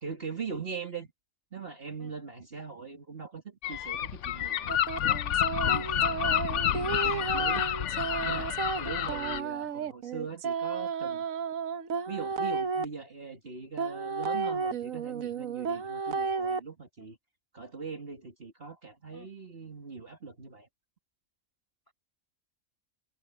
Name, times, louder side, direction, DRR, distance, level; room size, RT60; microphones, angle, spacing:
voice 1, 0.0-1.1 1.5-4.7 5.0-5.2 5.6-6.1 6.4-7.7 8.2-8.5 8.8-11.3 12.1-17.2 17.5-20.7, right 5 dB, 45° right, 2.3 m, -41 dB
Gull seagull, 3.6-9.4, left 11 dB, 65° left, 1.0 m, -29 dB
sound 1, 4.7-12.8 13.8-16.6, right 5 dB, 80° right, 1.4 m, -33 dB
voice 2, 6.0-6.4 7.0-7.2 8.6-8.7 17.0-17.1 19.1-19.3, equal, 15° left, 4.9 m, -49 dB
omnidirectional pair, 1.4 m